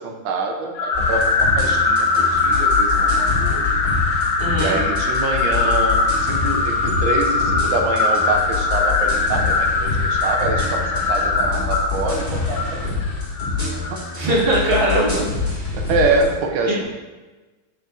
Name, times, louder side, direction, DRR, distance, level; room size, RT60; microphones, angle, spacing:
voice 1, 0.0-3.8 4.6-12.9 13.9-14.3 15.7-16.8, right 3 dB, 85° right, 3 dB, 1.5 m, -25 dB
sound 1, 0.8-14.1, left 3 dB, 65° left, 1.2 m, -21 dB
sound 2, 0.9-16.3, left 4 dB, 25° left, 1.8 m, -26 dB
voice 2, 4.4-4.7 14.2-15.7 16.7-16.8, right 1 dB, 30° right, -6 dB, 1.5 m, -21 dB
7.2 x 5.3 x 2.5 m, 1.2 s
omnidirectional pair, 2.1 m